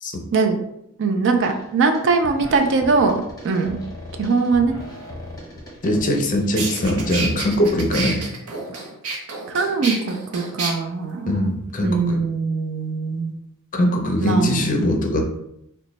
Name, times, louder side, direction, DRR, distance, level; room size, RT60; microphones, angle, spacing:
voice 1, 1.0-3.8 4.2-4.7 9.5-11.5 11.8-13.3 14.2-14.9, right 4 dB, 55° right, 5 dB, 0.4 m, -21 dB
sound 1, 1.4-1.6 1.9-8.2, left 1 dB, 15° left, 0.8 m, -38 dB
voice 2, 5.8-8.2 11.3-12.2 13.7-15.2, left 1 dB, 35° left, 3 dB, 0.5 m, -21 dB
sound 2, 6.1-6.2 6.6-10.7, right 3 dB, 80° right, 0.7 m, -29 dB
3.0 x 2.2 x 3.9 m, 0.79 s
head